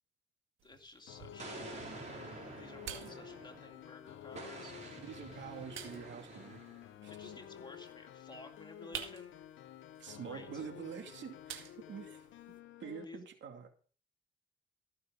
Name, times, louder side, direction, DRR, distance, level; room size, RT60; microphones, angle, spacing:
voice 1, 0.6-1.8 2.6-4.8 7.1-9.4 10.3-10.7 13.0-13.2, left 2 dB, 20° left, 4 dB, 2.5 m, -54 dB
sound 1, 0.6-12.6, right 9 dB, 90° right, 2.0 m, -52 dB
sound 2, 1.1-13.0, left 10 dB, 85° left, 0.8 m, -52 dB
Explosion, 1.4-3.8 4.3-6.9, right 2 dB, 35° right, 4.4 m, -49 dB
voice 2, 4.9-6.6 7.0-7.3 10.0-12.3 12.8-13.8, right 7 dB, 70° right, 5 dB, 2.5 m, -46 dB
15.0 x 6.6 x 5.2 m, 0.42 s
cardioid pair, 75°, 20 cm